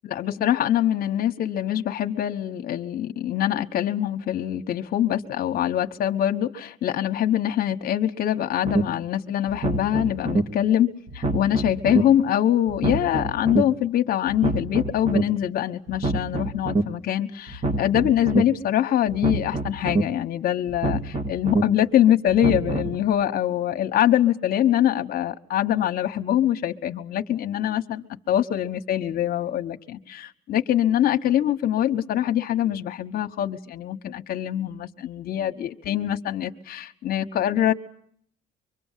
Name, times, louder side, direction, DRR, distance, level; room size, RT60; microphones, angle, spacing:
voice 1, 0.0-37.7, left 11 dB, 60° left, 6 dB, 1.4 m, -24 dB
sound 1, 8.6-8.8 9.5-10.4 11.1-12.0 12.7-13.6 14.3-15.2 15.9-16.8 17.5-18.4 19.1-20.0 20.7-21.6 22.3-23.0, right 2 dB, 40° right, 2.3 m, -26 dB
25.0 x 24.0 x 7.5 m, 0.64 s
cardioid pair, 110°, 17 cm